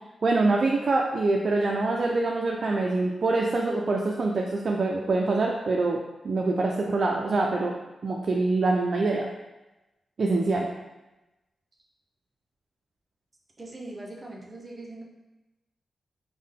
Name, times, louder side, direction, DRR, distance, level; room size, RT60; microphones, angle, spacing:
voice 1, 0.2-6.0 6.2-7.7 8.0-9.3 10.2-10.7, right 3 dB, 55° right, 0 dB, 0.3 m, -25 dB
voice 2, 13.6-15.0, right 2 dB, 35° right, -2 dB, 0.7 m, -41 dB
3.6 x 2.1 x 3.5 m, 1.0 s
cardioid pair, 70°, 0 cm